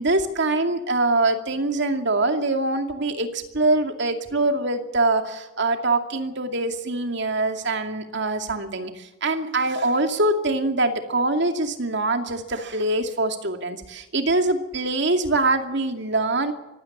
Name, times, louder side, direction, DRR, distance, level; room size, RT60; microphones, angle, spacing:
voice 1, 0.0-16.5, right 2 dB, 60° right, 6 dB, 2.4 m, -24 dB
24.0 x 16.5 x 7.3 m, 1.1 s
head